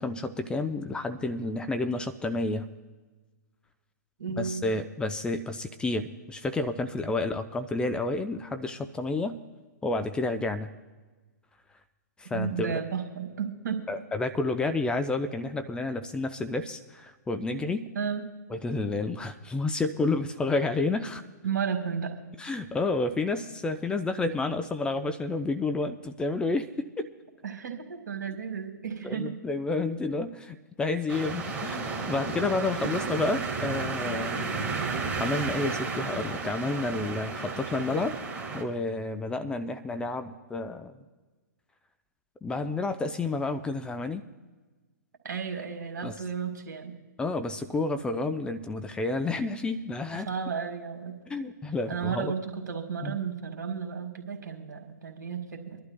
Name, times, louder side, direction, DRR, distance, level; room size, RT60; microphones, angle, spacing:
voice 1, 0.0-2.7 4.4-9.4 9.8-10.7 12.2-12.7 13.9-17.9 18.5-21.2 22.4-27.1 29.0-34.4 35.1-38.2 38.5-41.0 42.4-44.2 46.0-46.2 47.2-50.3 51.3-52.3 53.0-53.2, left 3 dB, 10° left, 8 dB, 0.4 m, -30 dB
voice 2, 4.2-4.6 12.2-13.8 17.9-18.2 21.4-22.1 27.4-29.3 32.8-32.9 45.2-46.9 50.3-51.1 51.9-55.8, right 6 dB, 75° right, 3 dB, 2.0 m, -33 dB
sound 1, 31.1-38.6, right 4 dB, 15° right, 1.6 m, -32 dB
26.0 x 11.5 x 2.2 m, 1.3 s
figure-of-eight pair, 125°, 10 cm